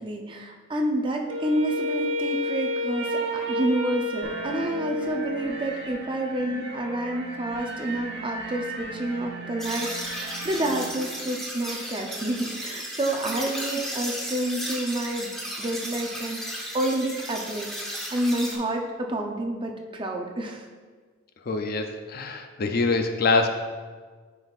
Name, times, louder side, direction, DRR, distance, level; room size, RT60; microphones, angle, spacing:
voice 1, 0.0-15.3 15.6-20.7, right 1 dB, 25° right, 2 dB, 0.5 m, -29 dB
Wind instrument woodwind instrument, 1.3-5.7, left 1 dB, 85° right, 0.9 m, -30 dB
sound 1, 4.2-10.9, right 3 dB, 55° right, 1.2 m, -38 dB
sound 2, 9.6-18.6, equal, ahead, 0.8 m, -35 dB
voice 2, 21.5-23.5, left 3 dB, 45° left, 6 dB, 0.4 m, -24 dB
9.4 x 5.3 x 2.4 m, 1.5 s
head